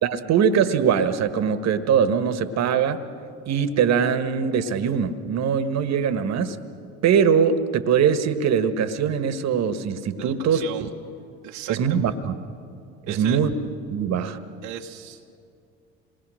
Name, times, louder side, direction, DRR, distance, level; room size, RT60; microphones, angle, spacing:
voice 1, 0.0-3.0 3.5-6.6 7.0-10.6 11.7-12.3 13.1-13.5 13.9-14.4, right 7 dB, 50° right, 10 dB, 1.5 m, -22 dB
voice 2, 10.2-10.9 11.4-12.2 13.1-13.4 14.6-15.3, right 11 dB, 70° right, 1 dB, 1.3 m, -36 dB
27.0 x 20.5 x 6.5 m, 2.5 s
hypercardioid pair, 65°, 33 cm